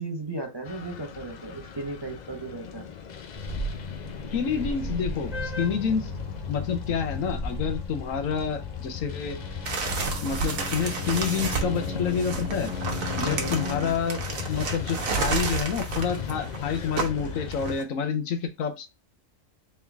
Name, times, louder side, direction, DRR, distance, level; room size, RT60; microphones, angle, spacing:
voice 1, 0.0-2.9 4.5-4.7 13.2-13.5, right 2 dB, 25° right, 0 dB, 0.7 m, -35 dB
sound 1, 0.7-17.8, left 8 dB, 65° left, 0.4 m, -37 dB
sound 2, 3.3-13.9, left 1 dB, 30° left, 1.8 m, -36 dB
voice 2, 4.3-6.1 6.5-9.4 10.2-12.7 13.2-14.2 14.5-19.0, left 6 dB, 85° left, 7 dB, 1.1 m, -28 dB
sound 3, 9.7-17.8, right 4 dB, 85° right, 1.3 m, -31 dB
3.6 x 3.2 x 3.4 m, 0.25 s
omnidirectional pair, 1.4 m